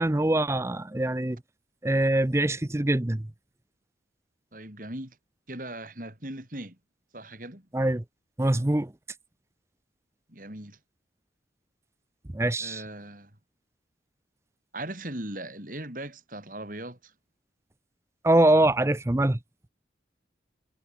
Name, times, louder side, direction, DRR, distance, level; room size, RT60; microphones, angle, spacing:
voice 1, 0.0-1.4 1.8-3.3 7.7-8.0 8.4-8.9 12.3-12.8 18.2-19.4, right 1 dB, 15° right, 0.5 m, -23 dB
voice 2, 4.5-5.2 5.5-6.8 7.1-7.7 10.3-10.8 12.6-13.3 14.7-17.1, right 1 dB, 45° right, 5.2 m, -39 dB
head